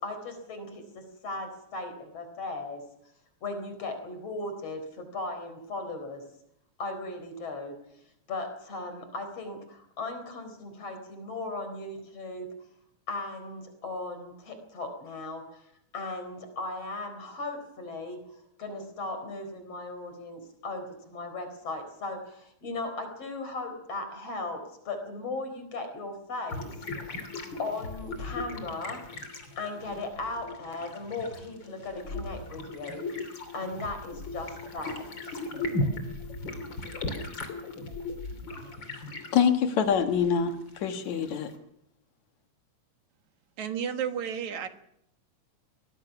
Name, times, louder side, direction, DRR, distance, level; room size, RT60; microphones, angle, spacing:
voice 1, 0.0-2.8 3.4-6.2 6.8-7.8 8.3-12.5 13.1-15.6 15.9-26.7 27.1-27.2 27.6-29.0 29.6-35.4, left 2 dB, 55° left, 7 dB, 5.4 m, -37 dB
sound 1, 26.5-41.6, left 2 dB, 40° left, 3.4 m, -37 dB
voice 2, 39.3-41.5, left 7 dB, 75° left, 6 dB, 2.8 m, -25 dB
voice 3, 43.6-44.7, right 8 dB, 75° right, 7 dB, 2.9 m, -32 dB
23.5 x 19.0 x 6.0 m, 0.76 s
omnidirectional pair, 3.3 m